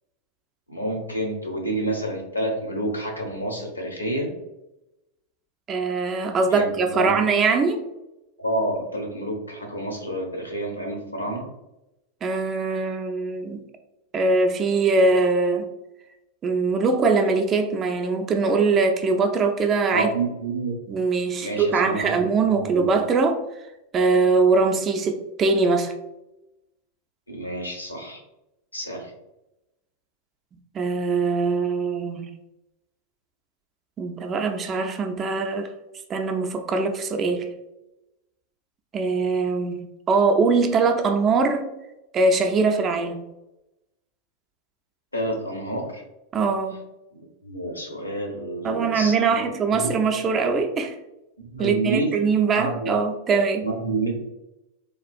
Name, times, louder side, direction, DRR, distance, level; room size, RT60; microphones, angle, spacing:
voice 1, 0.7-4.3 6.5-7.2 8.4-11.4 19.9-20.7 21.4-22.2 22.5-22.9 27.3-28.2 28.7-29.1 45.1-46.0 47.1-49.5 49.8-49.9 51.4-52.1 52.5-52.9 53.6-54.1, right 2 dB, 85° left, 1 dB, 0.7 m, -29 dB
voice 2, 5.7-7.8 12.2-13.6 14.1-15.7 16.4-20.1 20.9-23.4 23.9-25.9 30.7-32.3 34.0-35.7 36.1-37.5 38.9-41.7 42.1-43.2 46.3-46.8 48.6-51.0 51.6-53.6, right 4 dB, 25° right, 5 dB, 0.4 m, -22 dB
3.4 x 2.3 x 2.5 m, 0.93 s
figure-of-eight pair, 90°, 0 cm